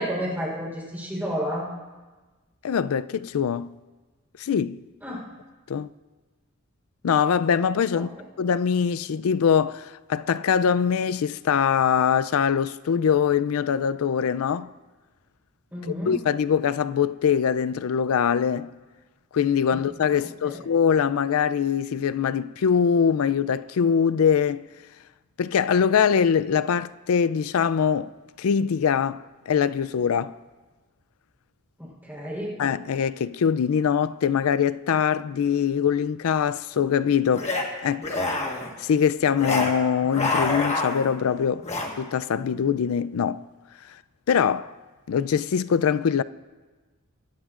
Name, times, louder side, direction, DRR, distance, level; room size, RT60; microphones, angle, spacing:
voice 1, 0.0-1.7 5.0-5.3 7.9-8.1 15.7-16.1 19.7-19.8 20.2-20.6 31.8-32.6, equal, 10° right, 3.8 m, -31 dB
voice 2, 2.6-3.7 4.4-4.8 5.7-5.9 7.0-8.1 8.4-14.7 16.1-18.7 19.3-24.6 25.4-28.1 28.4-30.3 32.6-37.5 37.8-38.2 38.8-41.7 42.0-43.4 44.3-44.7 45.1-46.2, left 7 dB, 85° left, 0.4 m, -23 dB
sound 1, 37.3-37.6 38.0-38.7 39.4-39.7 40.0-41.1 41.6-41.9, left 2 dB, 30° left, 1.4 m, -26 dB
23.5 x 12.5 x 2.5 m
head